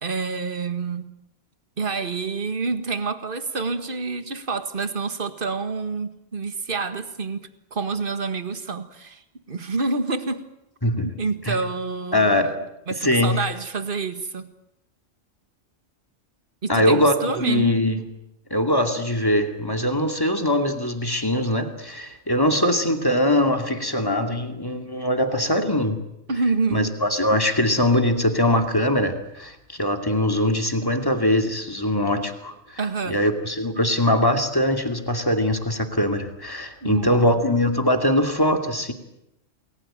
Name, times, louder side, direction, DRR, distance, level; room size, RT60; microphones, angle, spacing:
voice 1, 0.0-1.1 1.8-10.5 11.0-12.5 12.9-14.5 16.6-17.7 26.3-27.0 32.8-33.3 36.8-37.3, right 4 dB, 45° right, 9 dB, 1.9 m, -28 dB
voice 2, 12.1-12.5 13.0-13.4 16.7-18.0 18.5-26.0 26.7-32.8 33.1-38.9, left 1 dB, 15° left, 5 dB, 2.6 m, -22 dB
29.0 x 21.0 x 9.0 m, 0.86 s
omnidirectional pair, 1.3 m